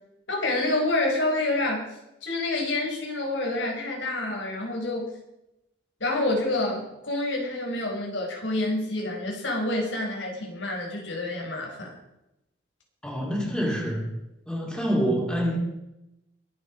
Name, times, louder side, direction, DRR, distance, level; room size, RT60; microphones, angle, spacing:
voice 1, 0.3-1.9 2.2-5.1 6.0-11.9, left 2 dB, 90° left, 0 dB, 4.7 m, -28 dB
voice 2, 13.0-14.0 14.5-15.6, equal, 5° left, -2 dB, 3.8 m, -26 dB
22.0 x 8.4 x 5.1 m, 0.91 s
head